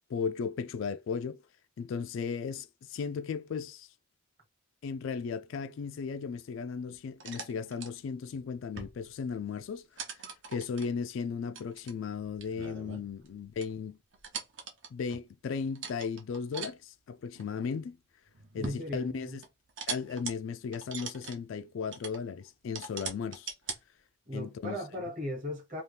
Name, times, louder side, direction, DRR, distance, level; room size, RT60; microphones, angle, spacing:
voice 1, 0.1-1.4 1.8-3.9 4.8-14.0 14.9-18.0 18.5-19.4 19.9-23.5 24.3-24.8, left 6 dB, 60° left, 0.3 m, -36 dB
sound 1, 6.9-7.9 8.6-9.1 9.4-9.6 10.0-10.9 11.5-13.3 13.6-13.7 14.1-15.3 15.7-16.7 17.3-17.8 18.3-18.9 19.4-20.3 20.7-21.4 21.9-22.2 22.7-23.8, right 5 dB, 55° right, 0.7 m, -41 dB
voice 2, 18.6-19.4 24.2-25.8, equal, 35° right, 1.2 m, -37 dB
2.8 x 2.3 x 3.3 m
head